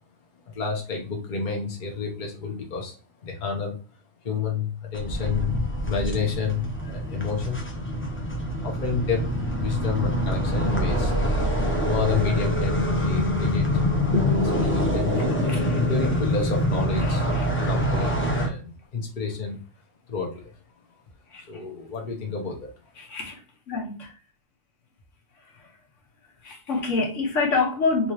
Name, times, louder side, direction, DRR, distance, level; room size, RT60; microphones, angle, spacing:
voice 1, 0.5-3.0 3.2-3.8 4.2-5.5 5.8-7.6 8.6-11.2 11.8-13.8 14.5-17.3 17.6-18.1 18.4-19.6 20.1-20.5 21.5-22.7, left 5 dB, 40° left, 1.0 m, -29 dB
sound 1, 4.9-18.5, equal, 15° left, 0.4 m, -25 dB
Guitar, 14.1-17.1, left 4 dB, 50° right, 0.8 m, -32 dB
voice 2, 17.1-17.5 21.3-21.4 23.0-23.4 23.7-24.2 25.4-25.7 26.4-28.1, left 4 dB, 70° left, 1.3 m, -27 dB
3.7 x 2.9 x 3.0 m
omnidirectional pair, 1.3 m